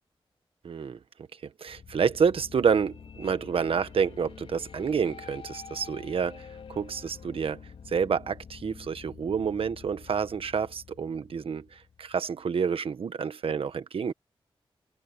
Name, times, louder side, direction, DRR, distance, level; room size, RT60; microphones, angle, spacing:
voice 1, 0.6-1.0 1.6-7.6 7.9-14.1, right 6 dB, 70° right, 1.3 m, -28 dB
sound 1, 1.7-12.6, left 6 dB, 80° left, 4.5 m, -48 dB
wide cardioid pair, 85°, 10 cm